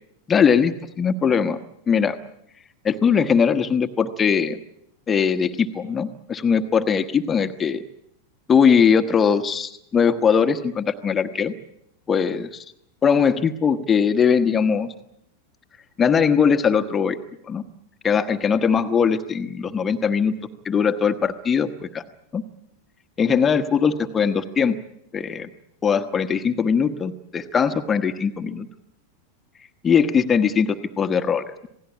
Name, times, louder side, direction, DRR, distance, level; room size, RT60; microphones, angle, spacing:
voice 1, 0.3-1.6 1.9-2.2 2.8-4.6 5.1-7.8 8.5-11.5 12.1-12.6 13.0-14.9 16.0-17.2 17.4-17.6 18.0-20.3 20.6-22.0 22.3-22.4 23.2-24.8 25.1-25.5 25.8-28.7 29.8-31.7, left 6 dB, 20° left, 9 dB, 1.2 m, -20 dB
27.5 x 18.5 x 8.6 m, 0.78 s
figure-of-eight pair, 90°, 0 cm